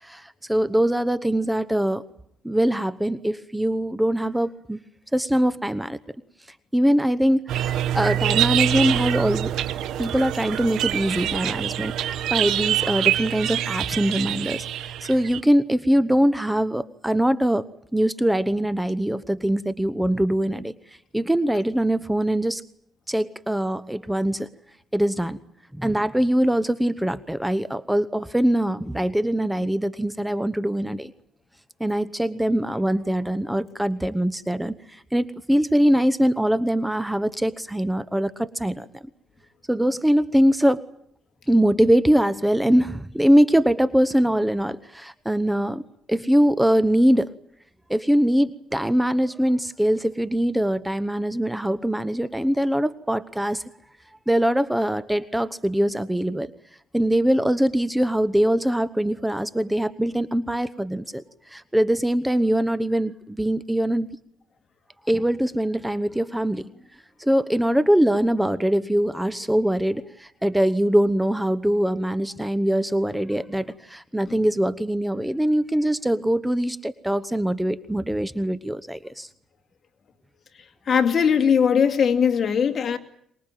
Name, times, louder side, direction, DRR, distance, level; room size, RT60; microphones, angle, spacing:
voice 1, 0.0-2.0 2.4-4.8 5.1-6.0 6.7-9.5 10.0-17.6 17.9-20.7 21.1-22.6 23.1-24.5 24.9-25.4 25.7-31.1 31.8-38.9 39.7-40.8 41.5-45.8 46.1-47.3 47.9-53.6 54.3-56.5 56.9-64.1 65.1-66.7 67.2-79.3, equal, 5° right, 1.0 m, -22 dB
sound 1, 7.5-15.4, right 12 dB, 85° right, 1.1 m, -25 dB
voice 2, 80.9-83.0, left 7 dB, 50° left, 2.4 m, -20 dB
24.5 x 21.0 x 9.1 m
cardioid pair, 90°, 0 cm